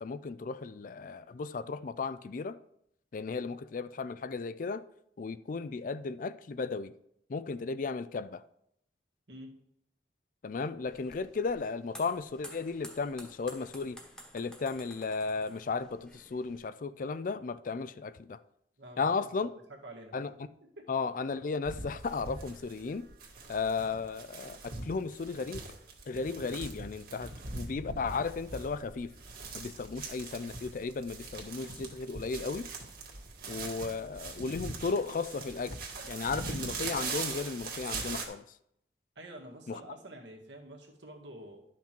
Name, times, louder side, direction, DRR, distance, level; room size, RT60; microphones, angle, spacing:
voice 1, 0.0-2.6 3.1-4.8 5.2-6.9 7.3-8.4 10.4-14.0 14.3-18.4 19.0-19.5 20.1-20.3 20.9-23.1 23.5-25.6 26.1-27.3 27.5-29.1 29.5-32.7 33.5-38.4 39.7-39.8, left 4 dB, 45° left, 0.4 m, -35 dB
voice 2, 9.3-9.6 18.8-20.2 20.6-20.9 39.2-41.6, right 1 dB, 80° right, 1.9 m, -48 dB
sound 1, 10.8-16.6, equal, 5° left, 1.2 m, -52 dB
sound 2, 21.6-38.3, right 4 dB, 55° right, 1.7 m, -41 dB
11.5 x 5.8 x 4.5 m
head